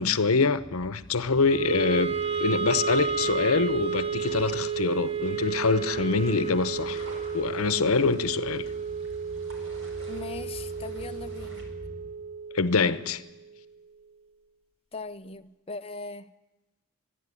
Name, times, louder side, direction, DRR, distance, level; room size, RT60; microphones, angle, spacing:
voice 1, 0.0-2.1 2.4-7.1 7.3-8.6 12.5-13.2, left 4 dB, 85° left, 0.9 m, -25 dB
sound 1, 0.6-12.1, equal, 10° left, 6.8 m, -47 dB
Wind instrument woodwind instrument, 1.4-13.7, right 6 dB, 25° right, 0.9 m, -32 dB
sound 2, 2.0-11.6, right 1 dB, 70° right, 5.0 m, -52 dB
voice 2, 10.1-11.7 14.9-16.3, left 3 dB, 30° left, 0.8 m, -39 dB
23.5 x 11.5 x 9.9 m
head